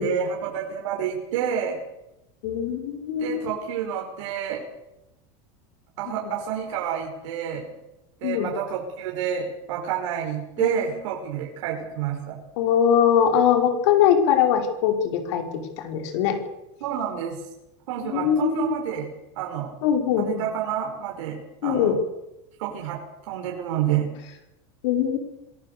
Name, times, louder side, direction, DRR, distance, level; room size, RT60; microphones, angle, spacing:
voice 1, 0.0-1.8 3.2-4.6 6.0-7.6 8.2-12.4 16.8-17.4 17.9-19.1 19.4-19.7 20.2-21.9 22.6-24.1, right 9 dB, 85° right, -1 dB, 5.7 m, -29 dB
voice 2, 2.4-3.4 6.1-6.3 8.2-8.5 10.6-10.8 12.6-15.4 15.8-16.4 18.0-18.7 19.8-20.4 21.6-21.9 24.8-25.2, left 8 dB, 65° left, 4 dB, 5.3 m, -22 dB
27.0 x 18.0 x 7.0 m, 0.91 s
supercardioid pair, 175°, 16 cm